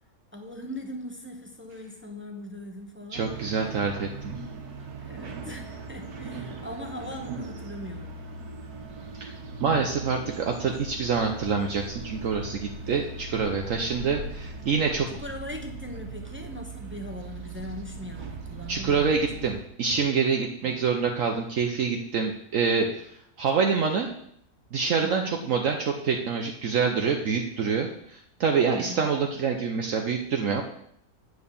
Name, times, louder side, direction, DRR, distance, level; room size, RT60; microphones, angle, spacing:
voice 1, 0.3-3.3 5.0-8.2 15.1-19.0 19.4-19.5 20.6-20.7 25.0-25.3 28.7-29.0, left 1 dB, 10° right, 3 dB, 0.7 m, -40 dB
voice 2, 3.1-4.3 9.1-9.3 9.6-15.1 18.7-23.1 23.4-24.1 24.7-30.6, right 5 dB, 65° right, 3 dB, 1.1 m, -26 dB
sound 1, 3.1-19.6, right 3 dB, 80° right, 1.7 m, -39 dB
8.9 x 4.7 x 6.9 m, 0.69 s
omnidirectional pair, 1.6 m